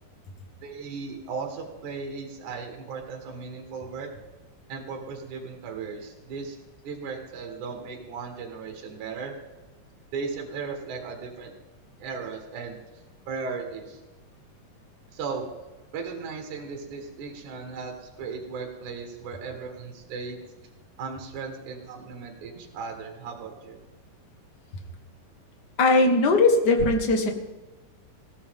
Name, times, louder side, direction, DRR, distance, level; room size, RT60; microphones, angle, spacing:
voice 1, 0.6-4.1 4.7-6.6 6.8-9.4 10.1-11.5 12.0-12.8 13.3-14.0 15.1-15.5 15.9-20.4 21.0-23.8, right 5 dB, 65° right, 2 dB, 3.0 m, -36 dB
voice 2, 25.8-27.3, left 3 dB, 40° left, 3 dB, 1.6 m, -19 dB
20.5 x 16.0 x 3.7 m, 1.2 s
omnidirectional pair, 3.9 m